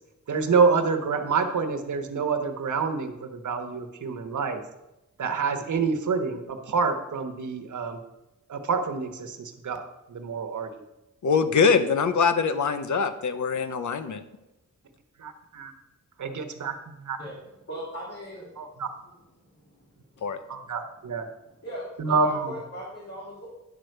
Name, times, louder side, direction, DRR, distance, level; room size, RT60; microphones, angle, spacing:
voice 1, 0.3-4.6 5.2-8.0 8.5-10.8 15.2-15.7 16.2-17.2 18.6-18.9 20.5-21.3 22.0-22.5, right 5 dB, 75° right, 6 dB, 1.1 m, -27 dB
voice 2, 11.2-14.2 20.2-20.4, left 5 dB, 70° left, 10 dB, 0.8 m, -23 dB
voice 3, 17.7-18.5 19.8-19.9 20.4-20.6 21.6-23.5, equal, 55° left, -6 dB, 2.9 m, -38 dB
10.5 x 4.5 x 6.6 m, 0.96 s
wide cardioid pair, 90°, 30 cm